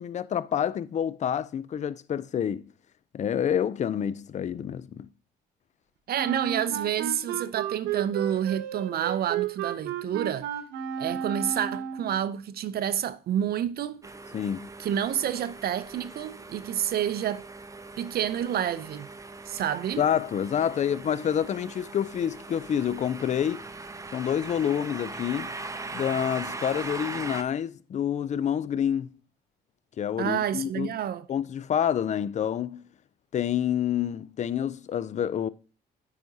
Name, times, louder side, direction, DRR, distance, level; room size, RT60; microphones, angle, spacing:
voice 1, 0.0-2.7 3.1-5.1 14.3-14.7 20.0-23.6 24.1-25.5 25.9-29.1 30.0-30.9 31.3-32.8 33.3-35.5, left 9 dB, 40° left, 0.4 m, -28 dB
voice 2, 6.1-10.5 11.0-14.0 14.8-17.4 18.0-19.1 19.5-20.0 30.2-31.3, right 10 dB, 55° right, 0.5 m, -29 dB
Wind instrument woodwind instrument, 6.1-12.2, right 9 dB, 85° right, 0.9 m, -33 dB
sound 1, 14.0-27.4, right 3 dB, 15° right, 0.7 m, -40 dB
8.9 x 4.9 x 2.7 m
supercardioid pair, 70°, 19 cm